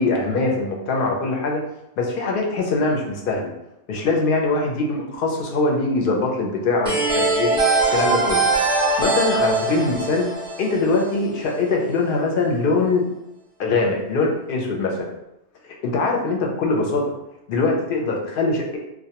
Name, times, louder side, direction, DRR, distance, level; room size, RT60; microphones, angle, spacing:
voice 1, 0.0-1.6 2.0-3.5 3.9-7.5 7.9-8.4 9.0-10.2 10.6-13.0 13.6-15.1 15.8-17.0 17.5-18.8, left 3 dB, 60° left, 0 dB, 0.6 m, -22 dB
sound 1, 6.9-11.5, right 3 dB, 5° right, 0.7 m, -21 dB
2.2 x 2.1 x 2.8 m, 0.85 s
omnidirectional pair, 1.2 m